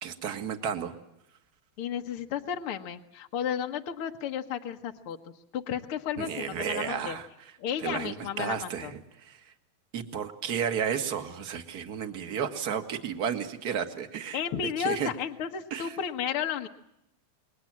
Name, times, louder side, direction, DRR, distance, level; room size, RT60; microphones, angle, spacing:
voice 1, 0.0-0.9 6.2-7.3 7.8-9.4 9.9-14.4 14.8-15.1 15.7-16.0, right 7 dB, 40° right, 8 dB, 1.5 m, -32 dB
voice 2, 1.8-5.2 5.5-7.2 7.6-8.9 14.3-16.7, left 8 dB, 60° left, 4 dB, 1.4 m, -33 dB
29.0 x 22.0 x 7.6 m, 0.81 s
omnidirectional pair, 4.2 m